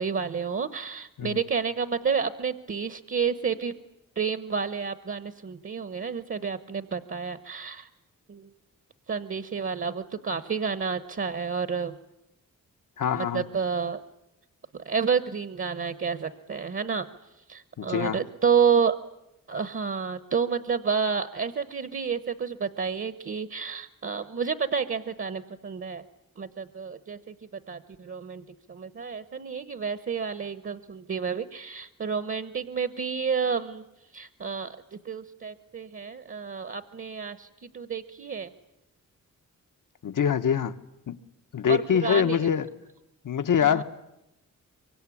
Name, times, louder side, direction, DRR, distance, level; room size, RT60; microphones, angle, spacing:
voice 1, 0.0-3.7 4.2-7.9 8.3-8.5 9.1-12.0 13.1-14.0 14.7-17.1 17.4-18.9 19.5-26.0 26.4-33.8 34.1-38.5 41.7-42.5 43.6-43.8, right 6 dB, 40° right, 13 dB, 1.0 m, -30 dB
voice 2, 13.0-13.4 17.8-18.2 40.0-40.7 41.1-41.2 41.5-42.6 43.2-43.8, left 8 dB, 75° left, 10 dB, 1.3 m, -24 dB
24.5 x 24.5 x 9.9 m, 0.89 s
wide cardioid pair, 145°, 32 cm